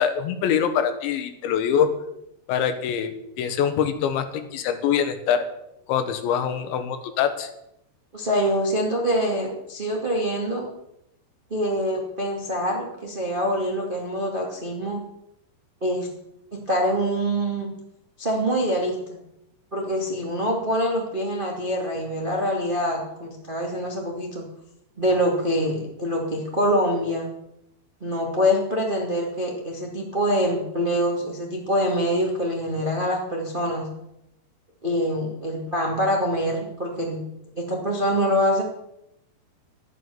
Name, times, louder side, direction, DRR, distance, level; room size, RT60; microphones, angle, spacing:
voice 1, 0.0-1.9 2.5-5.5 5.9-7.5, left 8 dB, 85° left, 9 dB, 3.6 m, -24 dB
voice 2, 8.1-10.7 11.5-15.0 15.8-16.1 16.5-17.7 18.2-19.2 19.7-24.4 25.0-27.3 28.0-33.9 34.8-37.2 37.5-38.6, equal, 20° right, -1 dB, 1.3 m, -25 dB
13.0 x 10.5 x 7.1 m, 0.82 s
omnidirectional pair, 5.1 m